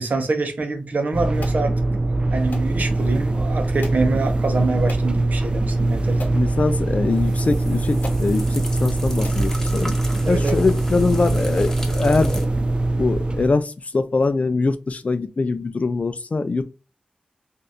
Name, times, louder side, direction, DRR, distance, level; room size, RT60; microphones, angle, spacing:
voice 1, 0.0-1.8 2.3-6.5 10.2-10.6, right 3 dB, 70° right, 0.7 m, -25 dB
sound 1, 1.1-13.5, right 2 dB, 35° right, 0.3 m, -22 dB
sound 2, 1.4-1.6 2.5-2.7 3.8-4.1 4.9-5.1 5.7-5.8 6.2-6.4 7.5-7.6 8.0-8.3 8.9-9.0 9.2-9.4 10.0-10.1 10.5-10.7, left 2 dB, 85° left, 0.8 m, -38 dB
voice 2, 6.3-9.9 10.3-12.4 13.0-16.6, left 3 dB, 55° left, 0.4 m, -22 dB
sound 3, 7.1-12.5, left 1 dB, 15° left, 0.9 m, -36 dB
2.7 x 2.5 x 3.4 m
cardioid pair, 50°, 3 cm